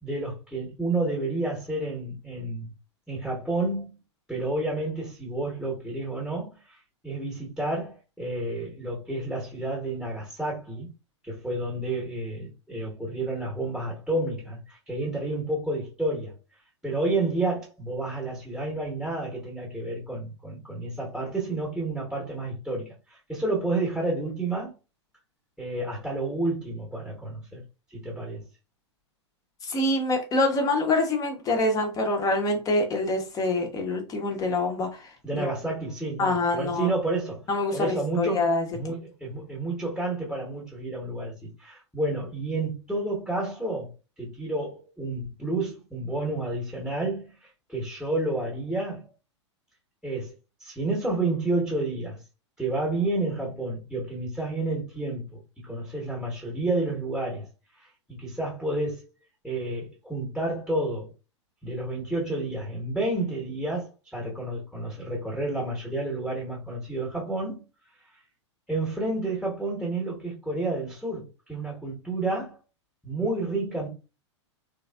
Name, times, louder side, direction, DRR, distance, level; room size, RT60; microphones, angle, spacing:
voice 1, 0.0-2.7 3.1-3.9 4.3-6.8 7.0-10.9 11.2-16.4 16.8-24.7 25.6-27.6 27.9-28.4 35.2-37.4 37.7-43.9 44.2-49.0 50.0-50.3 50.6-52.2 52.6-57.5 57.8-59.0 59.4-61.1 61.6-67.6 68.7-72.6 73.0-73.9, right 2 dB, ahead, 1.0 m, -30 dB
voice 2, 29.6-35.5 36.2-36.9 37.5-38.7, left 2 dB, 20° left, 0.8 m, -26 dB
3.3 x 2.4 x 2.3 m
figure-of-eight pair, 100°, 16 cm